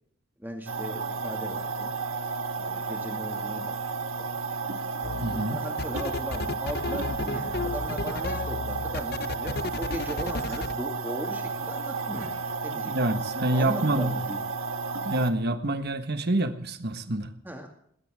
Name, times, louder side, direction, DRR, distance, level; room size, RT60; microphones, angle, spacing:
voice 1, 0.4-1.9 2.6-3.8 4.2-4.3 5.3-12.4 12.6-12.9 13.5-14.4 17.4-17.7, equal, 10° right, 2 dB, 2.3 m, -38 dB
sound 1, 0.7-15.3, right 4 dB, 90° right, 1.5 m, -32 dB
sound 2, 5.0-5.4 5.8-10.7, left 4 dB, 50° left, 0.6 m, -33 dB
voice 2, 5.2-5.6 12.9-14.1 15.0-17.3, right 1 dB, 50° right, 9 dB, 1.5 m, -27 dB
20.0 x 17.5 x 3.7 m, 0.66 s
head